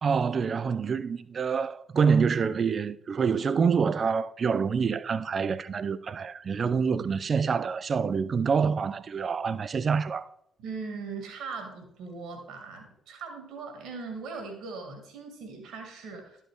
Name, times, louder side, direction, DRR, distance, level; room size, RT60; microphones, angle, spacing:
voice 1, 0.0-10.3, right 6 dB, 40° right, 0.4 m, -26 dB
voice 2, 10.6-16.4, right 4 dB, 60° right, 1.9 m, -39 dB
12.0 x 5.5 x 3.5 m
figure-of-eight pair, 45°, 0 cm